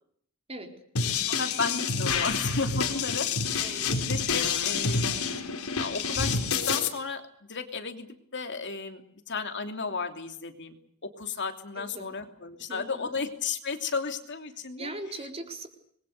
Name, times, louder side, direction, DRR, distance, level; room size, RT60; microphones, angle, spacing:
sound 1, 1.0-6.9, left 5 dB, 85° left, 4.3 m, -28 dB
voice 1, 1.3-5.4 5.8-7.2 7.5-9.0 9.3-14.9, left 5 dB, 55° left, 6 dB, 3.0 m, -34 dB
voice 2, 3.6-4.1 11.8-12.1 12.7-13.1 14.8-15.7, right 2 dB, 30° right, 4 dB, 4.3 m, -40 dB
27.0 x 22.0 x 6.7 m, 0.66 s
head